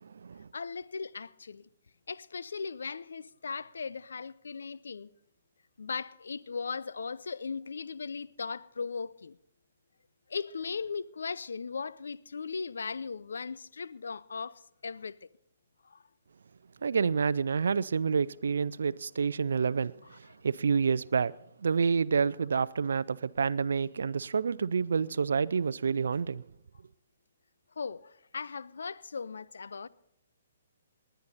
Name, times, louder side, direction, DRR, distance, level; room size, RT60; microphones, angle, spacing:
voice 1, 0.5-1.6 2.1-5.1 5.8-9.4 10.3-15.3 15.8-16.0 20.1-20.2 27.8-29.9, left 5 dB, 75° left, 0.5 m, -38 dB
voice 2, 16.8-19.9 20.4-21.3 21.6-26.4, right 5 dB, 75° right, 0.4 m, -28 dB
19.5 x 10.5 x 4.1 m
hypercardioid pair, 135°, 0 cm